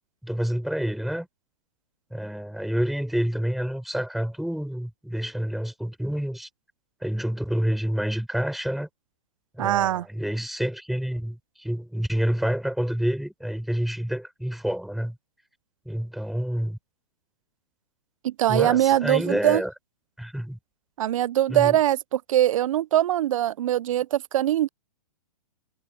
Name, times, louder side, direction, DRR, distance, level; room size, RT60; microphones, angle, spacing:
voice 1, 0.2-1.3 2.1-6.5 7.0-8.9 9.6-15.2 15.9-16.8 18.5-19.7 20.2-20.6 21.5-21.8, equal, ahead, 3.8 m, -28 dB
voice 2, 9.6-10.1 18.2-19.6 21.0-24.7, right 12 dB, 65° right, 0.4 m, -22 dB
hypercardioid pair, 135°, 19 cm